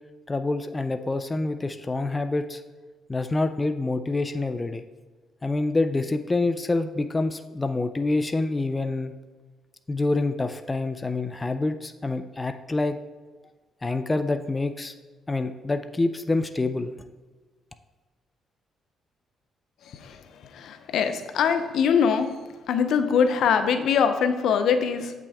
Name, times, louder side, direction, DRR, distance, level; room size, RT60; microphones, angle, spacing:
voice 1, 0.3-2.6 3.1-4.8 5.4-9.1 9.9-13.0 13.8-14.9 15.3-16.9, left 2 dB, 20° left, 8 dB, 0.4 m, -26 dB
voice 2, 20.5-22.3 22.7-25.1, left 7 dB, 75° left, 8 dB, 0.6 m, -22 dB
8.0 x 5.9 x 3.5 m, 1.3 s
cardioid pair, 90°, 0 cm